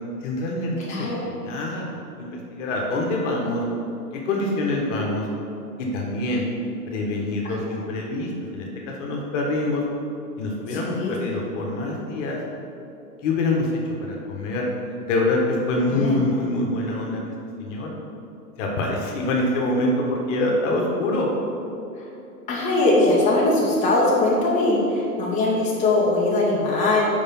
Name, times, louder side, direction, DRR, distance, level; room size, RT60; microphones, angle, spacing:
voice 1, 0.2-1.1 1.4-3.6 4.1-5.3 5.8-6.5 6.9-9.8 10.4-12.4 13.2-14.7 15.0-17.2 17.6-17.9 18.6-21.3, left 2 dB, 50° left, -1 dB, 1.5 m, -25 dB
voice 2, 7.4-7.8 10.7-11.1 15.9-16.2 22.5-27.0, left 2 dB, 15° left, -7 dB, 1.2 m, -21 dB
5.3 x 5.0 x 5.6 m, 2.7 s
hypercardioid pair, 125°, 48 cm